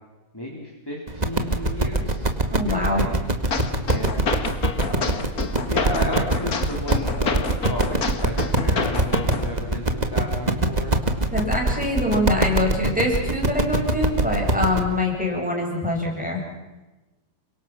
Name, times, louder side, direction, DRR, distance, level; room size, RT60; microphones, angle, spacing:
voice 1, 0.3-1.0 1.2-2.3 2.6-3.1 3.9-4.2 4.8-5.2 5.7-11.0 14.8-15.0, left 1 dB, 15° left, -2 dB, 3.7 m, -33 dB
sound 1, 1.1-14.8, right 2 dB, 25° right, 1.9 m, -23 dB
voice 2, 2.5-3.0 11.3-16.4, left 1 dB, 5° right, -2 dB, 7.4 m, -24 dB
sound 2, 3.5-9.5, left 4 dB, 60° left, 2.2 m, -28 dB
29.0 x 24.5 x 6.1 m, 1.1 s
omnidirectional pair, 1.8 m